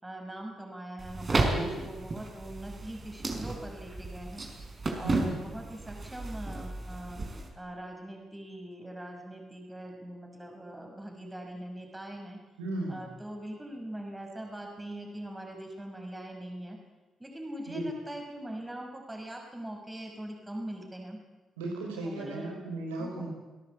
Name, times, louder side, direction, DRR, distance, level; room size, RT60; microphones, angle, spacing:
voice 1, 0.0-4.4 4.9-7.2 7.6-12.4 12.9-16.8 17.2-21.2 22.0-22.5 23.0-23.3, right 1 dB, 15° right, 2 dB, 6.2 m, -42 dB
sound 1, 1.0-7.5, right 2 dB, 40° right, 5.6 m, -33 dB
voice 2, 1.4-1.9 5.0-5.4 12.6-13.0 17.7-17.9 21.6-23.3, right 2 dB, 85° right, 1 dB, 5.5 m, -35 dB
27.5 x 17.5 x 8.5 m, 1.2 s
hypercardioid pair, 40°, 0 cm